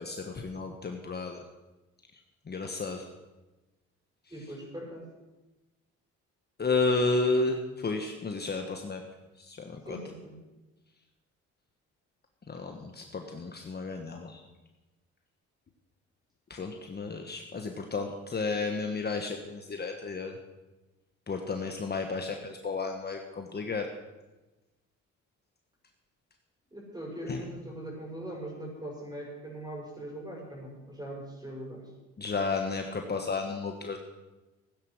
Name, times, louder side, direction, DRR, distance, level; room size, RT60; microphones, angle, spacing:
voice 1, 0.0-1.4 2.5-3.1 6.6-9.0 9.4-10.0 12.5-14.4 16.5-20.3 21.3-23.9 27.3-27.4 32.2-34.0, left 3 dB, 35° left, 4 dB, 1.3 m, -32 dB
voice 2, 4.3-5.1 9.8-10.4 26.7-31.9, right 1 dB, 15° right, -2 dB, 6.5 m, -41 dB
15.5 x 9.9 x 6.3 m, 1.1 s
cardioid pair, 90°, 30 cm